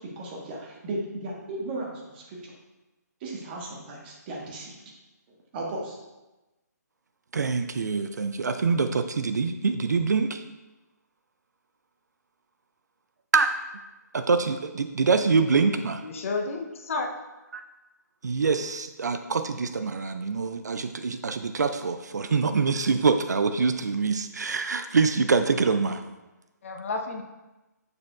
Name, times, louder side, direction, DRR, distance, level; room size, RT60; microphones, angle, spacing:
voice 1, 0.0-2.5 3.2-4.8 5.5-6.0, right 2 dB, 30° right, -1 dB, 1.3 m, -36 dB
voice 2, 7.3-10.4 13.3-13.5 14.1-16.0 17.5-17.6 18.2-26.0, right 4 dB, 70° right, 9 dB, 0.4 m, -25 dB
voice 3, 16.0-17.1 26.6-27.2, left 3 dB, 45° left, 3 dB, 0.7 m, -31 dB
7.2 x 6.6 x 2.3 m, 1.0 s
figure-of-eight pair, 140°, 10 cm